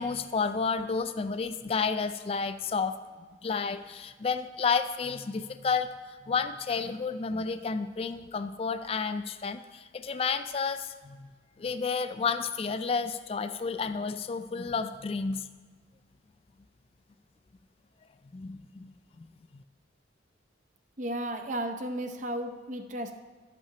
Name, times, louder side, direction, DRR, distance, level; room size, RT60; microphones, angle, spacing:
voice 1, 0.0-3.0 3.4-11.3 11.6-15.5 18.3-19.3 19.5-19.6, left 5 dB, 30° left, 10 dB, 0.3 m, -31 dB
voice 2, 21.0-23.1, right 1 dB, 40° right, 6 dB, 0.6 m, -34 dB
12.5 x 8.7 x 2.8 m, 1.4 s
head